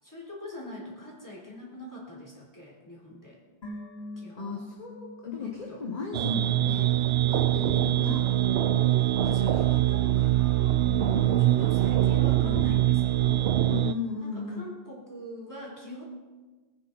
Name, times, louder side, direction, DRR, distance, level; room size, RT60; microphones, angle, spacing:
voice 1, 0.0-3.4 4.2-4.6 5.4-5.8 7.7-8.2 8.9-10.8 11.4-13.6 14.2-16.0, left 1 dB, 15° left, -4 dB, 3.8 m, -43 dB
sound 1, 3.6-6.9 7.2-7.3, left 1 dB, 70° left, 3.3 m, -44 dB
voice 2, 4.4-6.9 7.3-8.2 11.0-11.4 12.3-12.8 13.7-14.7, left 5 dB, 40° left, 0 dB, 1.5 m, -36 dB
sound 2, 6.1-13.9, right 13 dB, 70° right, 0.8 m, -23 dB
21.0 x 9.6 x 4.2 m, 1.3 s
omnidirectional pair, 1.1 m